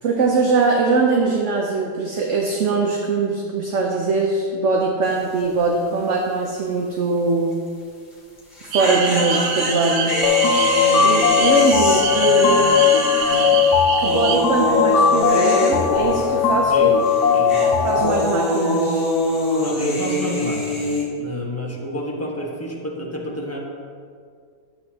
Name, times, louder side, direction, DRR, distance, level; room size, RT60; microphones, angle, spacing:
voice 1, 0.0-7.6 8.6-10.1 10.5-10.7 11.0-12.8 14.0-16.9 17.6-19.1, right 4 dB, 55° right, 0 dB, 0.9 m, -22 dB
sound 1, 5.0-5.4 5.6-5.7 8.4-16.7 17.0-21.0, left 1 dB, 30° left, 2.2 m, -25 dB
sound 2, 8.7-14.4, right 7 dB, 75° right, 1.3 m, -26 dB
sound 3, 10.2-18.2, left 7 dB, 75° left, 1.3 m, -18 dB
voice 2, 17.3-17.6 19.6-23.6, equal, 10° left, -3 dB, 1.0 m, -29 dB
12.0 x 8.2 x 2.9 m, 2.1 s
omnidirectional pair, 1.8 m